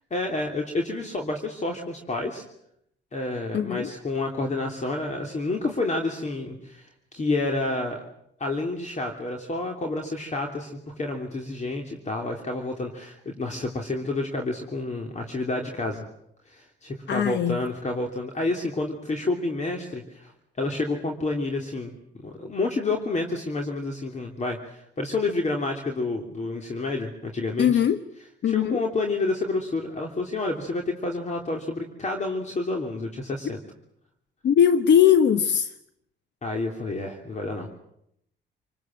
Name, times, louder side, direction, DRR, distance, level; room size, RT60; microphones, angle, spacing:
voice 1, 0.1-2.4 3.1-8.0 8.4-16.0 16.5-20.3 20.6-27.8 28.4-33.6 36.4-37.7, left 2 dB, 35° left, 2 dB, 3.3 m, -29 dB
voice 2, 3.5-3.9 17.1-17.6 27.6-28.0 28.4-28.8 34.4-35.7, left 9 dB, 60° left, 11 dB, 1.1 m, -20 dB
28.0 x 20.5 x 7.7 m, 0.75 s
cardioid pair, 90°, 20 cm